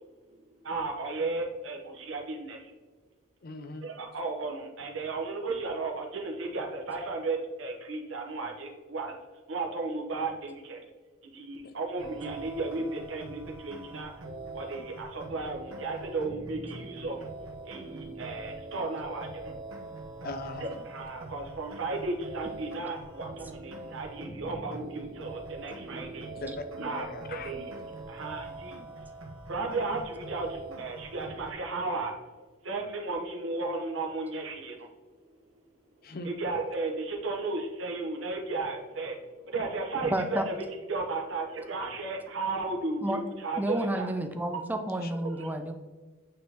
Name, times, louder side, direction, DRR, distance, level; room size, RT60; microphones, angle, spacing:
voice 1, 0.6-2.6 3.8-9.1 9.5-10.8 11.4-14.1 14.5-17.2 17.7-19.3 20.6-26.3 26.8-27.6 28.1-28.7 29.5-30.5 30.8-32.1 32.6-34.7 36.2-39.2 39.5-40.5 40.9-44.1 45.4-45.5, right 3 dB, 65° right, 1 dB, 1.1 m, -34 dB
voice 2, 3.4-3.9 20.2-20.7 26.3-26.6 26.9-27.5 36.0-36.3 44.9-45.1, left 2 dB, 45° left, 8 dB, 0.5 m, -39 dB
sound 1, 12.0-31.5, right 2 dB, 85° right, 1.1 m, -43 dB
voice 3, 40.0-40.5 43.0-43.2 43.6-45.7, right 1 dB, 10° right, 6 dB, 0.5 m, -31 dB
8.7 x 3.7 x 2.9 m, 1.3 s
head